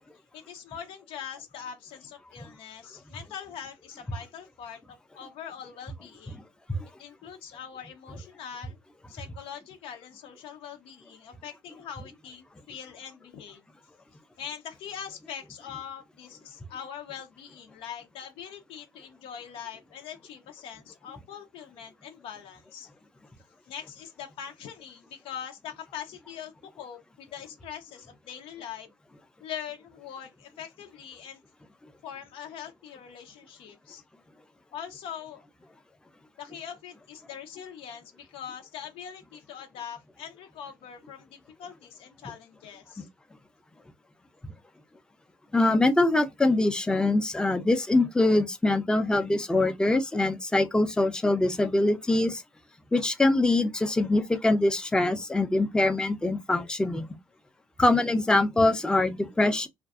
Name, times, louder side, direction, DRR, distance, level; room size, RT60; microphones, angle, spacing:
voice 1, 0.3-6.4 7.0-8.8 9.1-13.6 14.4-22.9 23.7-28.9 29.4-31.4 32.0-34.0 34.7-35.4 36.4-43.1, left 8 dB, 75° left, 0.6 m, -42 dB
voice 2, 45.5-52.4 52.9-57.1 57.8-59.7, left 2 dB, 10° left, 0.5 m, -23 dB
2.5 x 2.3 x 2.3 m
cardioid pair, 100°, 9 cm